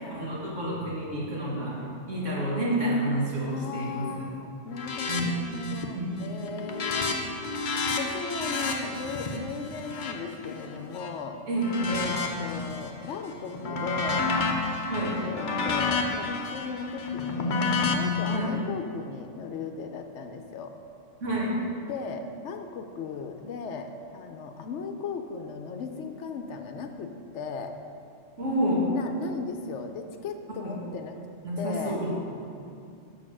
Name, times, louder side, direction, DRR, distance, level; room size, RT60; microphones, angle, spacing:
voice 1, 0.0-4.3 5.1-5.3 5.9-6.4 11.5-12.0 14.9-15.2 18.3-18.5 21.2-21.6 28.4-28.9 30.6-30.8 31.4-32.1, right 1 dB, 75° right, -5 dB, 2.1 m, -29 dB
voice 2, 3.5-7.3 7.9-11.4 11.9-12.1 12.4-14.3 15.2-20.7 21.8-27.7 28.9-31.2 31.6-32.0, left 5 dB, 70° left, 6 dB, 0.9 m, -37 dB
sound 1, 4.7-5.2 5.5-5.9 6.3-11.1 11.6-12.9 13.3-18.4, left 4 dB, 45° left, 0.8 m, -30 dB
6.6 x 5.9 x 6.1 m, 2.5 s
omnidirectional pair, 1.3 m